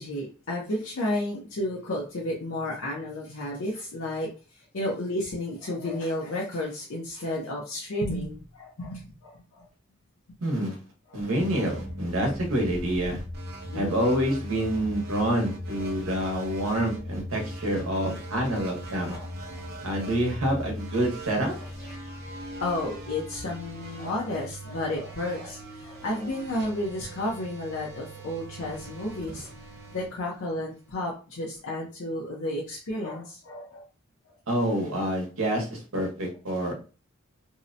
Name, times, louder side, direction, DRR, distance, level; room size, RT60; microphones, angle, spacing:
voice 1, 0.0-9.7 11.1-11.4 13.7-14.1 19.1-19.6 21.6-21.7 22.6-29.5 29.9-33.9, left 1 dB, 70° left, -3 dB, 0.5 m, -32 dB
voice 2, 10.4-10.8 11.1-13.2 13.7-19.1 19.8-21.5 34.5-36.7, right 1 dB, 85° right, 1 dB, 0.9 m, -27 dB
sound 1, 11.4-30.9, equal, 45° right, 0.8 m, -39 dB
2.7 x 2.0 x 2.5 m, 0.35 s
head